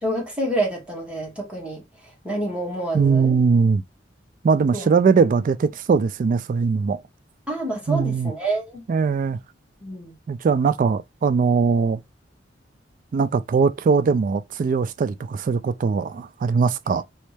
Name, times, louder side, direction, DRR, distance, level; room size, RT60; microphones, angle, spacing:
voice 1, 0.0-3.4 4.7-4.9 7.5-8.8 9.8-10.1, right 1 dB, 5° right, 2.1 m, -28 dB
voice 2, 2.9-3.8 4.4-7.0 7.9-8.3 8.9-9.4 10.3-12.0 13.1-17.0, right 5 dB, 45° right, 0.3 m, -20 dB
4.2 x 3.1 x 3.3 m
head